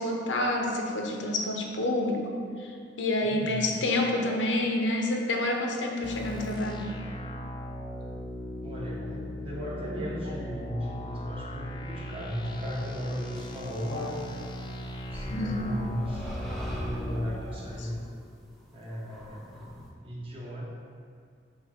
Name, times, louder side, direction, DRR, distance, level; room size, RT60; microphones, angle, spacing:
voice 1, 0.0-2.3 2.6-2.7 3.0-6.9 13.9-14.1 15.3-15.7 17.2-17.3, left 1 dB, 90° left, 1 dB, 0.8 m, -28 dB
voice 2, 3.2-3.8 8.6-14.3 15.1-16.3 16.7-18.0 18.7-19.7 20.0-20.6, equal, 30° right, -5 dB, 1.4 m, -36 dB
sound 1, 6.0-17.3, equal, 25° left, 0.5 m, -38 dB
sound 2, 13.3-13.6 15.1-19.9, equal, ahead, 0.8 m, -40 dB
8.0 x 2.9 x 5.0 m, 2.2 s
head